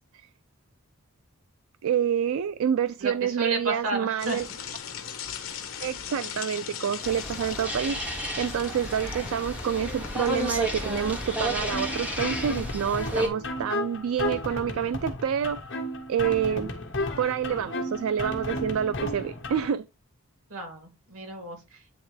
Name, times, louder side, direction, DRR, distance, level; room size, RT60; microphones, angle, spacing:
voice 1, 1.8-4.5 5.8-15.6 16.1-16.7 17.2-19.8, right 8 dB, 75° right, 0.3 m, -28 dB
voice 2, 3.0-4.4 20.5-21.9, right 2 dB, 90° right, 2.2 m, -33 dB
sound 1, 4.2-12.2, left 7 dB, 85° left, 1.1 m, -39 dB
sound 2, 7.0-13.3, equal, 5° right, 1.6 m, -32 dB
sound 3, 11.7-19.7, left 1 dB, 60° left, 1.7 m, -33 dB
9.4 x 3.5 x 3.2 m
head